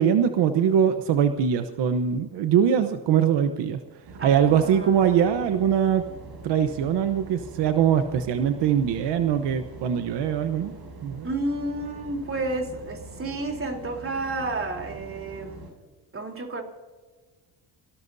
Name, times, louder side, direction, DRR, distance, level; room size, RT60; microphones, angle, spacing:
voice 1, 0.0-3.8 4.2-6.0 6.4-10.7 11.0-11.3, right 8 dB, 80° right, 8 dB, 1.1 m, -22 dB
sound 1, 4.1-15.7, right 3 dB, 65° right, 7.0 m, -43 dB
voice 2, 4.2-5.4 11.2-15.7 16.1-16.6, right 2 dB, 30° right, 3 dB, 3.6 m, -31 dB
28.0 x 19.0 x 2.7 m, 1.4 s
cardioid pair, 95°, 41 cm